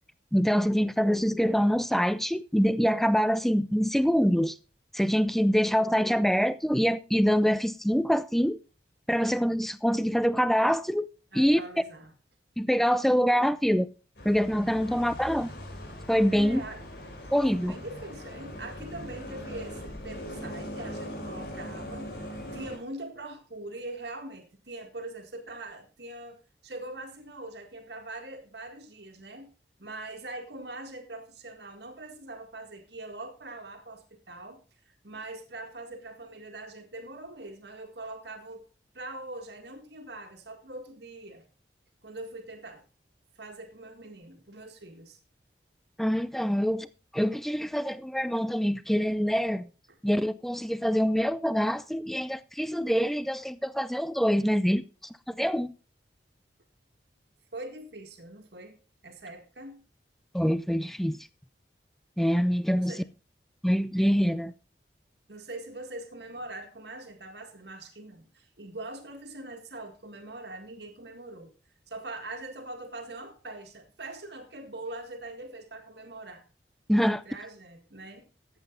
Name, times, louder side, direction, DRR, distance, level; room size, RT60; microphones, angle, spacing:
voice 1, 0.3-4.6 4.9-8.6 9.1-11.1 11.3-11.6 12.6-13.9 14.2-15.5 16.1-16.6 17.3-17.8 46.0-46.9 47.1-49.7 50.0-54.8 55.3-55.7 60.3-61.2 62.2-63.0 63.6-64.5 76.9-77.2, equal, ahead, 0.4 m, -25 dB
voice 2, 11.3-12.1 14.8-14.9 16.3-16.8 17.5-26.4 26.6-29.5 29.8-34.6 35.0-38.7 38.9-41.4 42.0-42.8 43.4-45.2 57.5-58.8 59.0-59.8 62.8-63.0 65.3-71.5 71.9-76.4 77.0-78.3, right 2 dB, 75° right, 1.9 m, -42 dB
sound 1, 14.2-22.8, equal, 65° left, 3.5 m, -40 dB
14.0 x 8.1 x 3.8 m
head